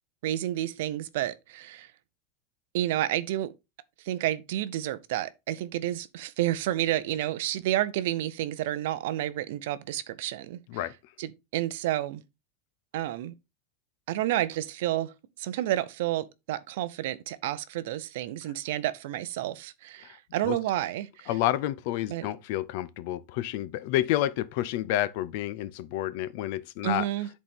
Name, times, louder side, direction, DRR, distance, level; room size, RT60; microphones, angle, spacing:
voice 1, 0.2-1.9 2.7-3.5 4.0-10.6 11.2-12.2 12.9-13.3 14.1-15.1 15.4-21.3 22.1-22.3 26.8-27.3, right 13 dB, 60° right, 0.6 m, -30 dB
voice 2, 21.3-27.1, left 14 dB, 50° left, 0.5 m, -29 dB
10.5 x 4.2 x 3.6 m
supercardioid pair, 180°, 0 cm